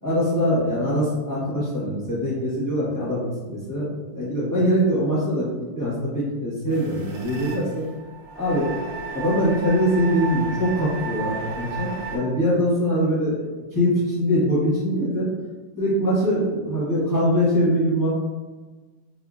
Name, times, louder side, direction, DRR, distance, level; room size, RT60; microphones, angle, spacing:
voice 1, 0.0-5.5 5.7-7.8 8.3-15.3 15.8-18.2, equal, 15° left, -10 dB, 0.9 m, -23 dB
sound 1, 6.7-12.2, right 4 dB, 70° right, 0.8 m, -34 dB
4.3 x 2.7 x 2.4 m, 1.3 s
omnidirectional pair, 2.0 m